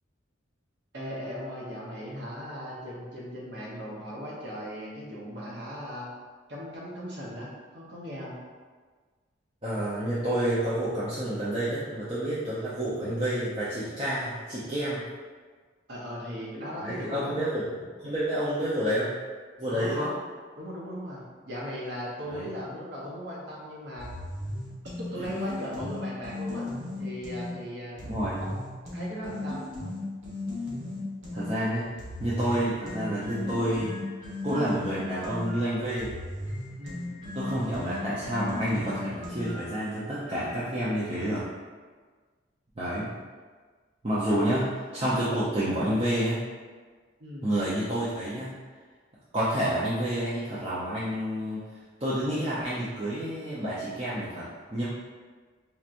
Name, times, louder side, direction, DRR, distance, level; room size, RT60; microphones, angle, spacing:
voice 1, 0.9-6.1 6.5-7.5 7.7-8.4 15.9-17.3 19.7-20.2 20.6-24.1 25.1-26.7 27.0-28.0 28.4-28.5 28.8-29.6 36.8-37.1 47.2-47.5, equal, 60° right, -5 dB, 1.0 m, -38 dB
voice 2, 9.6-15.1 16.8-19.1 19.6-20.1 22.2-22.5 25.2-25.4 28.0-28.4 31.3-31.9 32.2-33.9 34.4-36.1 37.3-41.4 42.8-43.1 44.0-46.4 47.4-48.5 49.3-54.8, right 1 dB, 30° right, -10 dB, 0.6 m, -29 dB
sound 1, 24.0-27.5 28.0-31.5 32.0-39.8, left 2 dB, 75° right, 1.4 m, -36 dB
4.3 x 2.9 x 2.5 m, 1.5 s
head